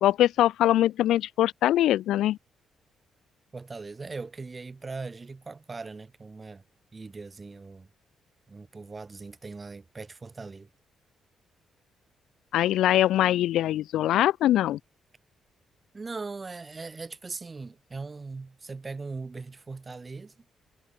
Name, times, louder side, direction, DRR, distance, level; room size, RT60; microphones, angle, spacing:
voice 1, 0.0-2.4 12.5-14.8, left 13 dB, 85° left, 0.7 m, -22 dB
voice 2, 3.5-6.6 6.9-7.9 8.5-10.7 15.9-20.3, right 4 dB, 20° right, 3.7 m, -40 dB
cardioid pair, 165°, 0 cm